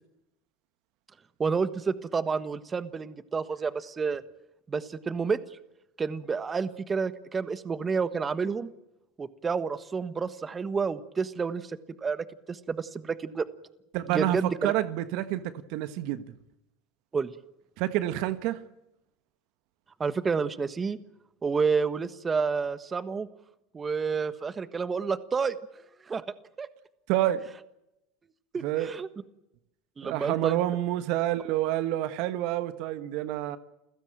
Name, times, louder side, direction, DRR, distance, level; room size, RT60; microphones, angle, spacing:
voice 1, 1.4-4.2 4.7-5.4 6.0-8.7 9.2-11.7 12.0-13.4 14.1-14.7 17.1-17.3 20.0-21.0 21.4-23.3 23.7-25.5 26.1-26.2 26.6-26.7 28.5-29.1 30.0-30.6, right 5 dB, 25° right, 1.4 m, -29 dB
voice 2, 13.9-16.2 17.8-18.6 27.1-27.5 28.6-28.9 30.0-33.6, right 14 dB, 65° right, 1.3 m, -28 dB
29.5 x 16.0 x 9.1 m
hypercardioid pair, 90°, 0 cm